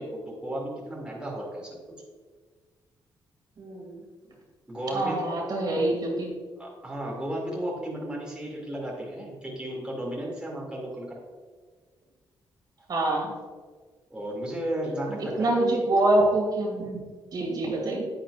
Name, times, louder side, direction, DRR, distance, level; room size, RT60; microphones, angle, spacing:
voice 1, 0.0-1.8 4.7-5.5 6.6-11.2 14.1-15.8, right 1 dB, 10° right, -3 dB, 2.6 m, -34 dB
voice 2, 3.6-4.0 4.9-6.3 12.9-13.3 15.4-17.0 17.3-18.1, right 2 dB, 50° right, -1 dB, 2.5 m, -25 dB
10.0 x 9.4 x 2.5 m, 1.5 s
cardioid pair, 100°, 9 cm